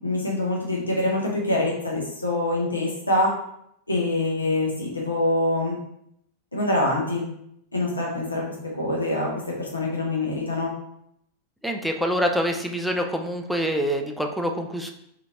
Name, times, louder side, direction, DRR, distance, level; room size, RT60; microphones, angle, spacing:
voice 1, 0.0-3.4 3.9-5.8 6.5-7.3 7.7-10.8, left 1 dB, 80° left, -3 dB, 0.6 m, -25 dB
voice 2, 11.6-14.9, equal, ahead, 3 dB, 0.3 m, -26 dB
2.8 x 2.5 x 2.8 m, 0.75 s
figure-of-eight pair, 90°, 0 cm